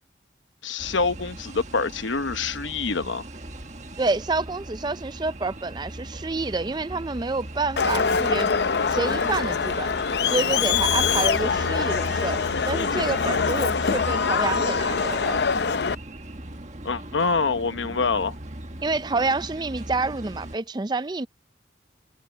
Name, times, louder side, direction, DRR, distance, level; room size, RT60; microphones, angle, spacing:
voice 1, 0.6-3.2 13.3-13.6 16.8-18.3, left 4 dB, 90° left, 1.0 m, -26 dB
sound 1, 0.8-20.6, right 1 dB, 40° right, 1.6 m, -39 dB
voice 2, 4.0-8.6 8.9-9.9 10.3-12.4 12.7-15.4 18.8-21.3, right 3 dB, 25° right, 0.4 m, -28 dB
Crowd, 7.8-15.9, left 5 dB, 65° left, 0.6 m, -24 dB
head